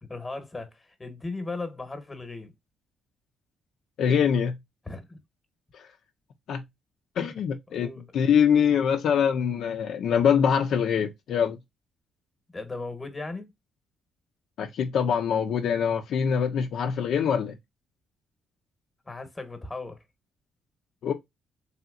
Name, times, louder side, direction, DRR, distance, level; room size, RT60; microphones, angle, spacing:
voice 1, 0.0-2.5 4.8-5.2 7.2-7.3 7.7-8.3 12.5-13.5 19.1-20.0, left 3 dB, 20° left, 1.0 m, -37 dB
voice 2, 4.0-4.6 6.5-6.6 7.2-7.9 8.1-11.6 14.6-17.6 21.0-21.1, left 7 dB, 70° left, 0.5 m, -24 dB
3.4 x 2.8 x 2.3 m
cardioid pair, 90°, 0 cm